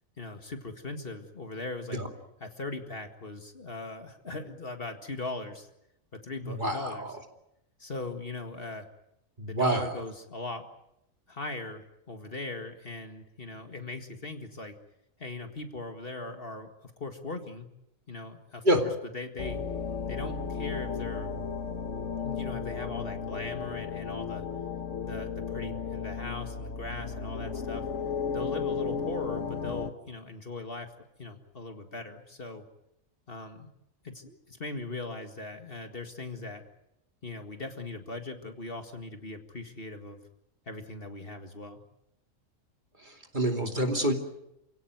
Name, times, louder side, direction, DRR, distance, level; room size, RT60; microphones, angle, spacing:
voice 1, 0.2-2.0 2.4-5.7 6.1-7.1 7.8-8.9 9.5-10.6 11.3-14.8 15.2-17.7 18.1-19.6 20.1-21.3 22.2-24.4 25.0-27.8 28.3-30.9 31.2-32.6 33.3-33.7 34.0-36.6 37.2-40.2 40.7-41.8, left 3 dB, 45° left, 6 dB, 2.1 m, -39 dB
voice 2, 6.4-7.0 9.4-9.8 18.6-18.8 43.3-44.1, right 1 dB, 35° right, 4 dB, 2.8 m, -26 dB
sound 1, 19.4-29.9, left 6 dB, 65° left, 1.7 m, -34 dB
28.5 x 17.0 x 9.4 m, 0.82 s
omnidirectional pair, 1.3 m